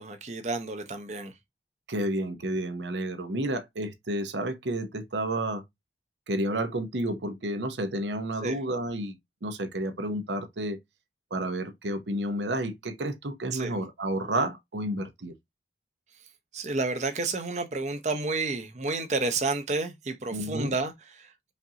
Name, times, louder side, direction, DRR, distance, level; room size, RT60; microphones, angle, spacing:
voice 1, 0.0-1.3 8.4-8.6 13.5-13.7 16.5-21.3, right 3 dB, 40° right, 0.7 m, -30 dB
voice 2, 1.9-5.6 6.3-10.8 11.3-15.3 20.3-20.7, right 1 dB, 85° right, 0.8 m, -31 dB
5.2 x 2.6 x 2.8 m
head